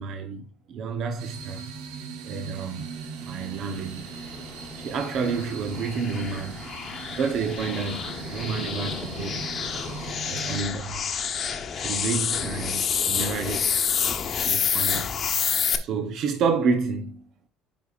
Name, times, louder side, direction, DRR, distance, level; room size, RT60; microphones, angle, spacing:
voice 1, 0.0-1.6 2.2-4.1 4.7-6.6 7.1-9.4 10.3-11.1 11.7-13.7 14.4-15.1 15.8-17.3, right 5 dB, 60° right, 0.9 m, -29 dB
sound 1, 1.2-10.6, right 5 dB, 80° right, 1.2 m, -39 dB
sound 2, 4.2-15.8, left 7 dB, 45° left, 1.1 m, -29 dB
9.1 x 5.2 x 2.5 m
supercardioid pair, 90°, 0 cm